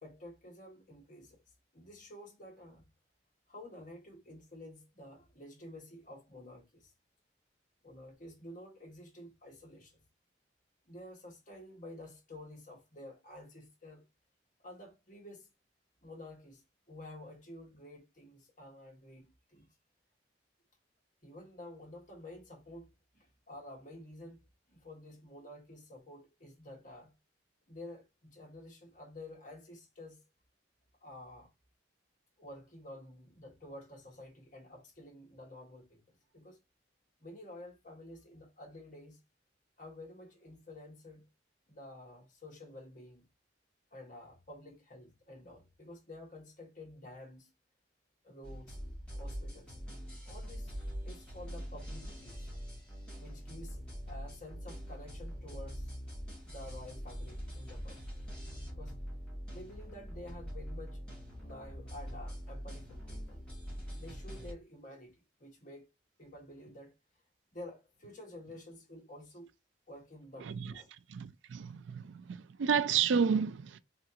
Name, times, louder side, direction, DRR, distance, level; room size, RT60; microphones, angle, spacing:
voice 1, 0.0-1.4 1.7-2.9 3.5-6.9 7.8-10.0 10.9-14.0 14.6-15.5 16.0-19.7 21.2-24.4 24.7-27.1 27.7-30.2 31.0-31.5 32.4-36.0 36.3-36.6 37.2-39.2 39.8-41.3 41.7-43.3 43.9-47.5 48.2-48.8 49.2-49.7 50.2-50.8 51.0-52.5 53.2-55.9 56.4-58.0 58.7-59.0 59.5-61.0 61.4-63.4 64.0-65.9 66.2-66.9 67.5-69.5 69.9-70.9, left 1 dB, 45° left, 1.5 m, -50 dB
sound 1, 48.4-64.5, equal, 5° left, 1.9 m, -43 dB
voice 2, 71.1-73.8, right 6 dB, 85° right, 0.4 m, -31 dB
3.8 x 3.3 x 2.7 m
head